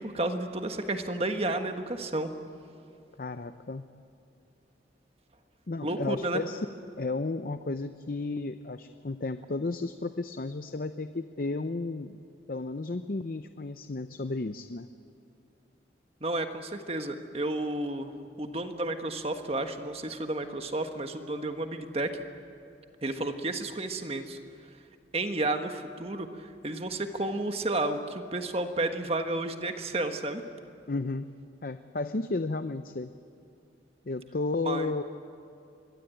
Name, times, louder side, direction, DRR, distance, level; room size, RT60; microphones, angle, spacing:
voice 1, 0.0-2.3 5.8-6.4 16.2-18.1 18.4-22.2 23.0-24.4 25.1-30.4 34.6-34.9, right 2 dB, 35° right, 6 dB, 1.5 m, -31 dB
voice 2, 3.2-3.8 5.7-6.7 7.0-12.2 12.5-14.9 30.9-31.3 31.6-33.1 34.1-35.0, left 3 dB, 50° left, 10 dB, 0.6 m, -33 dB
25.5 x 21.5 x 9.1 m, 2.5 s
head